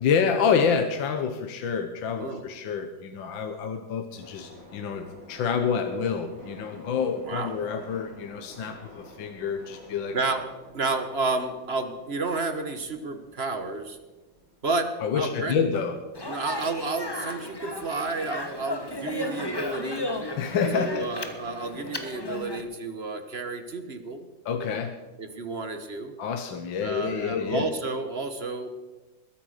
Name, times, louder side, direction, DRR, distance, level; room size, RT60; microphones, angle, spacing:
voice 1, 0.0-10.2 15.0-16.0 20.4-21.1 24.4-25.0 26.2-27.7, left 6 dB, 75° left, 6 dB, 1.7 m, -28 dB
sound 1, 4.1-14.8, left 1 dB, 10° right, 6.5 m, -50 dB
voice 2, 10.1-10.5 10.7-14.0 14.6-14.9 15.1-15.6 16.2-20.1 20.7-24.3 25.2-26.1 26.8-28.7, right 3 dB, 35° right, 8 dB, 1.2 m, -31 dB
Speech, 16.1-22.6, left 1 dB, 15° left, 0.8 m, -34 dB
21.0 x 9.0 x 6.6 m, 1.1 s
omnidirectional pair, 2.2 m